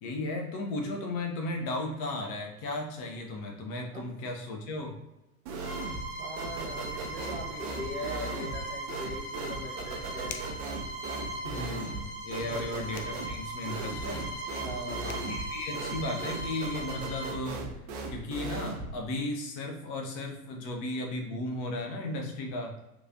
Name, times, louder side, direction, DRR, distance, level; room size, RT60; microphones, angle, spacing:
voice 1, 0.0-4.9 11.4-14.2 15.0-17.6 18.1-22.7, left 2 dB, 30° left, 1 dB, 0.6 m, -35 dB
sound 1, 5.5-6.1 6.4-19.0, right 3 dB, 30° right, 0.4 m, -38 dB
Bowed string instrument, 5.6-17.4, right 1 dB, 15° left, 1.1 m, -39 dB
voice 2, 6.2-10.4 12.4-12.6 14.6-15.1, right 1 dB, 10° right, -4 dB, 0.8 m, -40 dB
sound 2, 10.3-10.7 12.9-13.2 14.7-14.8 15.1-15.3, left 7 dB, 70° left, 0.6 m, -43 dB
3.0 x 2.4 x 2.6 m, 0.96 s
figure-of-eight pair, 90°, 47 cm